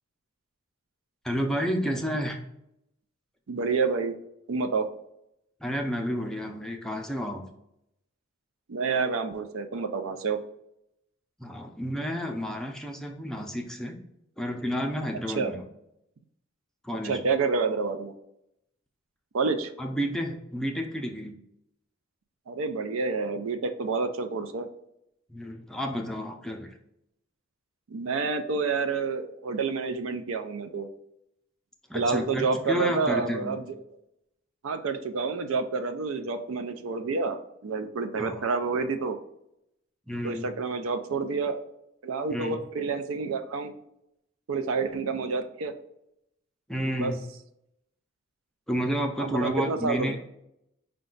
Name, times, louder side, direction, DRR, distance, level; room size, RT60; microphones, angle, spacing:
voice 1, 1.2-2.4 5.6-7.4 11.4-14.0 14.4-15.6 16.8-17.2 19.8-21.4 25.3-26.7 31.9-33.6 38.2-38.4 40.1-40.5 42.3-42.6 46.7-47.2 48.7-50.2, equal, 5° left, 2 dB, 0.5 m, -31 dB
voice 2, 3.5-4.2 4.5-4.9 8.7-10.4 15.4-15.5 17.0-18.1 19.3-19.7 22.5-24.7 27.9-30.9 31.9-33.8 34.6-39.2 40.2-41.6 42.0-43.7 44.5-45.7 47.0-47.1 49.2-50.2, right 4 dB, 80° right, 8 dB, 0.5 m, -28 dB
5.1 x 2.2 x 3.8 m, 0.81 s
head